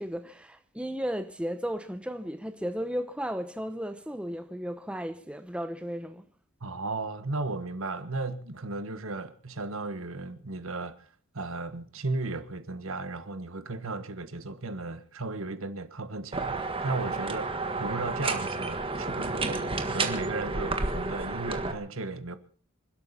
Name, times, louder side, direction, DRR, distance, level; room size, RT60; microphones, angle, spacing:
voice 1, 0.0-6.2, equal, 5° right, 0.9 m, -34 dB
voice 2, 6.6-11.1 11.3-22.4, right 3 dB, 70° right, 1.5 m, -35 dB
sound 1, 16.3-21.7, right 3 dB, 25° right, 1.6 m, -31 dB
27.0 x 12.5 x 4.2 m
head